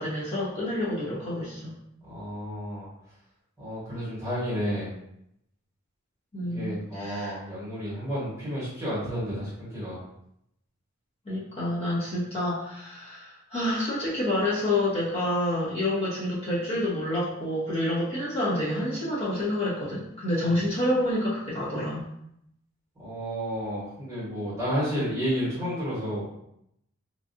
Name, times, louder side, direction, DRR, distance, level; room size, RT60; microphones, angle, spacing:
voice 1, 0.0-1.8 6.3-7.4 11.2-22.0, left 1 dB, 30° left, -10 dB, 1.1 m, -28 dB
voice 2, 2.0-2.9 3.6-4.9 6.4-10.0 20.4-20.5 23.0-26.2, equal, 15° right, -9 dB, 1.3 m, -31 dB
3.1 x 2.5 x 2.6 m, 0.77 s
head